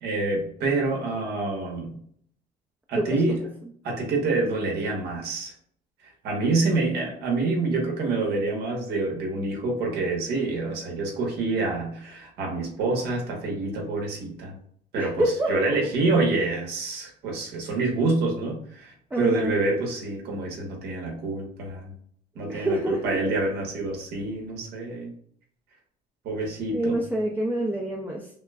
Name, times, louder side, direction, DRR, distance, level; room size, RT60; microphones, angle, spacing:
voice 1, 0.0-2.0 2.9-3.5 3.8-5.5 6.2-14.6 14.9-21.9 22.3-25.1 26.2-27.0, right 3 dB, 80° right, 0 dB, 1.4 m, -27 dB
voice 2, 15.0-15.8 19.1-19.6 22.5-23.2 26.7-28.3, right 1 dB, 10° right, -1 dB, 0.5 m, -26 dB
5.9 x 2.1 x 2.4 m, 0.63 s
cardioid pair, 110°, 17 cm